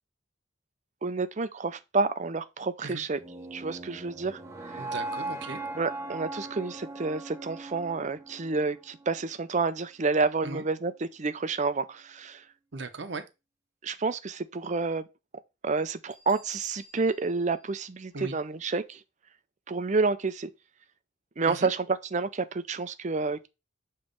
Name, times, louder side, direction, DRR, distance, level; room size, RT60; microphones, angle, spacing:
voice 1, 1.0-3.2 3.5-4.8 5.7-12.4 13.8-15.0 15.6-19.0 19.7-20.5 21.4-23.5, right 4 dB, 40° right, 0.6 m, -29 dB
sound 1, 3.2-9.3, right 2 dB, 15° right, 0.9 m, -39 dB
voice 2, 4.8-5.6 10.4-10.6 12.7-13.2 18.1-18.4 21.5-21.7, right 3 dB, 65° right, 0.9 m, -37 dB
Bell, 16.1-18.8, equal, 30° left, 1.7 m, -56 dB
7.1 x 3.3 x 5.2 m
head